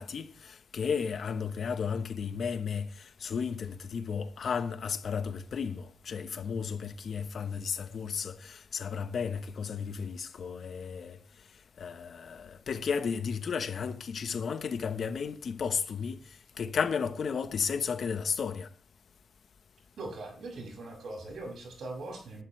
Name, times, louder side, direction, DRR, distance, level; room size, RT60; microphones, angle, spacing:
voice 1, 0.0-11.2 11.8-16.2 16.6-18.7, left 6 dB, 60° left, 1.2 m, -33 dB
voice 2, 20.0-22.4, right 2 dB, 75° right, 6.9 m, -41 dB
20.5 x 11.5 x 3.3 m
wide cardioid pair, 150°, 0 cm